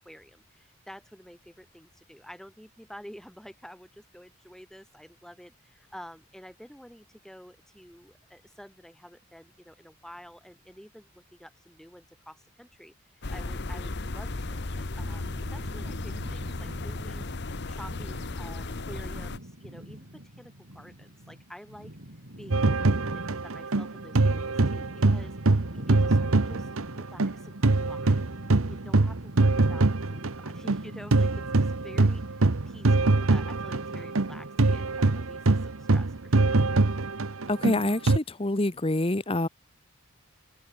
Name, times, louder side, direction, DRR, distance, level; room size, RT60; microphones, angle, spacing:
voice 1, 0.0-17.3 17.7-22.0 22.4-36.7, equal, ahead, 4.7 m, -49 dB
sound 1, 13.2-19.4, left 2 dB, 50° left, 1.1 m, -35 dB
sound 2, 15.0-34.5, right 1 dB, 60° right, 4.6 m, -44 dB
sound 3, 22.5-27.3 27.6-38.2, right 2 dB, 75° right, 1.0 m, -23 dB
voice 2, 37.5-39.5, left 1 dB, 25° left, 1.1 m, -26 dB
open air
head